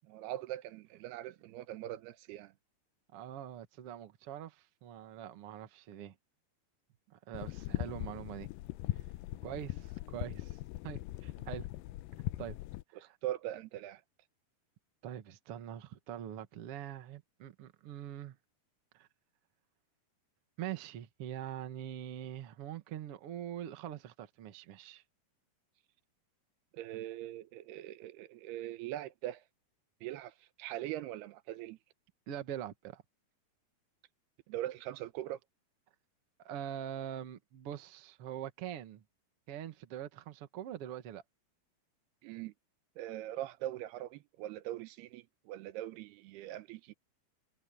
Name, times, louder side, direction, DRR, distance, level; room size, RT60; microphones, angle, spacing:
voice 1, 0.1-2.5 12.9-14.0 26.7-29.4 30.0-31.8 34.5-35.4 42.2-42.5 43.0-46.9, right 13 dB, 85° right, 2.9 m, -41 dB
voice 2, 3.1-6.1 7.1-8.5 9.4-10.6 10.8-11.7 12.4-12.6 13.0-13.2 15.0-18.4 18.9-19.1 20.6-25.0 32.3-33.0 36.4-39.0 39.5-41.2, right 10 dB, 55° right, 1.7 m, -43 dB
sound 1, 7.3-12.8, left 17 dB, 80° left, 2.1 m, -40 dB
omnidirectional pair, 4.5 m